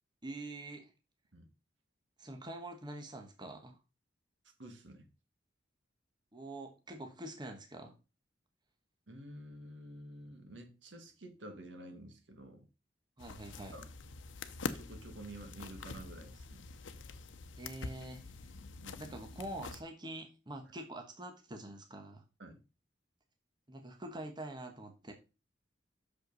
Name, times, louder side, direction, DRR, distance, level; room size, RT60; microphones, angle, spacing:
voice 1, 0.2-0.9 2.2-3.8 6.3-7.9 13.2-13.8 17.6-18.2 19.0-22.2 23.7-25.1, right 1 dB, 25° right, 1.1 m, -45 dB
voice 2, 4.6-5.0 9.1-12.7 13.7-13.9 14.7-16.7 18.8-19.0 22.4-22.6, right 1 dB, 70° right, 1.6 m, -50 dB
sound 1, 13.2-19.8, left 4 dB, 85° left, 0.7 m, -45 dB
6.6 x 5.4 x 5.3 m
head